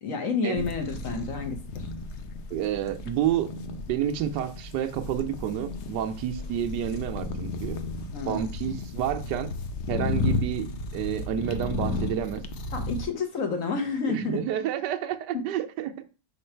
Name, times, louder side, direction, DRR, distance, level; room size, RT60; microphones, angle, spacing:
voice 1, 0.0-1.9 8.1-8.5 12.7-14.4, left 4 dB, 50° left, 1.4 m, -30 dB
sound 1, 0.5-13.0, left 3 dB, 70° left, 0.6 m, -34 dB
voice 2, 2.5-3.5 3.9-7.8 8.3-9.5 9.9-10.7 10.9-12.4 14.1-16.1, right 10 dB, 75° right, 1.2 m, -29 dB
5.8 x 3.8 x 4.4 m
omnidirectional pair, 1.9 m